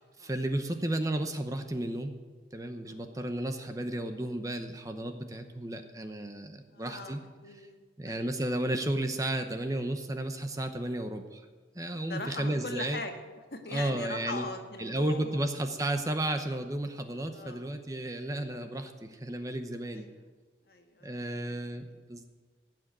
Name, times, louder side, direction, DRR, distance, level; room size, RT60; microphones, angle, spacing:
voice 1, 0.2-2.2 2.5-7.2 7.6-7.7 8.0-11.5 11.7-13.0 13.7-14.4 14.8-20.1 21.0-22.2, right 1 dB, 20° right, 7 dB, 0.8 m, -33 dB
voice 2, 6.7-7.2 7.4-8.4 12.1-13.1 13.5-15.5 17.3-17.7 19.9-20.2 20.7-21.5 21.8-22.0, left 2 dB, 60° left, 4 dB, 1.5 m, -41 dB
16.0 x 6.3 x 9.2 m, 1.4 s
head